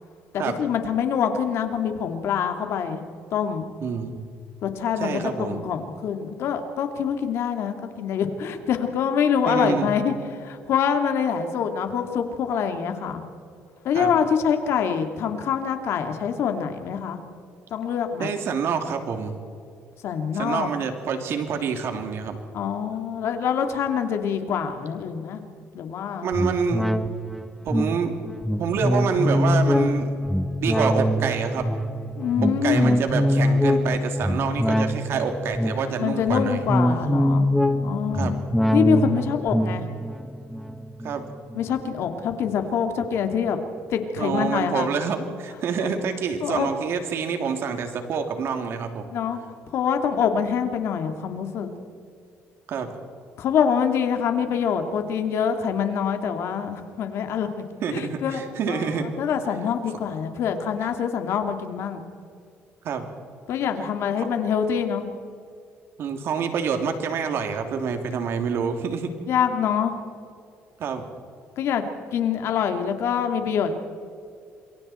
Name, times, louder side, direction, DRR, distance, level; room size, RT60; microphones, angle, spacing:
voice 1, 0.3-3.0 3.3-3.7 4.6-13.2 13.8-17.2 17.7-18.3 20.0-20.7 22.5-25.4 25.7-26.4 32.2-33.0 36.0-37.5 37.8-38.4 38.7-39.8 41.5-43.6 43.9-44.9 46.4-46.7 49.1-49.4 49.7-51.7 53.4-57.6 57.9-58.4 58.7-62.0 63.5-65.1 69.3-70.0 71.6-71.8 72.1-73.8, left 7 dB, 65° left, 6 dB, 2.4 m, -25 dB
voice 2, 3.8-4.2 5.0-5.6 9.5-9.9 13.9-14.1 18.2-19.3 20.3-22.4 26.2-26.9 27.6-28.1 28.6-30.1 30.6-31.7 32.6-36.6 38.1-38.3 41.0-41.2 44.2-49.1 52.7-52.9 57.8-59.1 62.8-63.1 64.2-64.3 66.0-69.1 70.8-71.1, right 6 dB, 65° right, 6 dB, 3.0 m, -27 dB
sound 1, 26.3-42.1 42.5-42.6, equal, ahead, 1.1 m, -24 dB
27.5 x 23.0 x 4.4 m, 2.4 s
cardioid pair, 105°, 5 cm